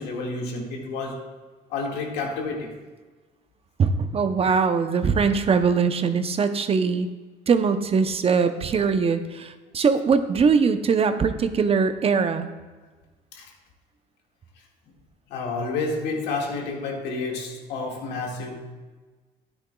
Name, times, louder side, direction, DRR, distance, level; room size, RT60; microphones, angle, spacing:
voice 1, 0.0-1.3 1.7-2.8 13.3-13.5 15.3-18.7, left 3 dB, 90° left, 0 dB, 1.9 m, -30 dB
voice 2, 3.8-7.1 7.5-12.5, right 5 dB, 35° right, 9 dB, 0.7 m, -21 dB
12.0 x 9.9 x 2.3 m, 1.3 s
cardioid pair, 110°, 17 cm